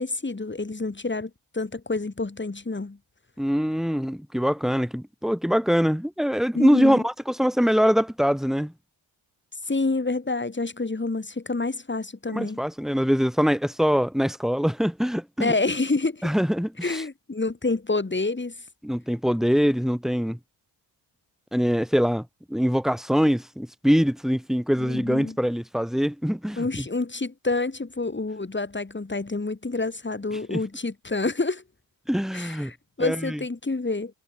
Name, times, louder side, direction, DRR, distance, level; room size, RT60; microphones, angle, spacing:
voice 1, 0.0-3.0 6.5-7.0 9.7-12.6 15.4-16.2 16.8-18.5 24.8-25.4 26.6-31.6 32.3-34.1, left 3 dB, 20° left, 7.1 m, -28 dB
voice 2, 3.4-8.7 12.3-15.5 16.2-17.0 18.8-20.4 21.5-26.8 30.5-30.6 32.1-32.7 33.0-33.4, equal, ahead, 6.7 m, -23 dB
cardioid pair, 75°, 50 cm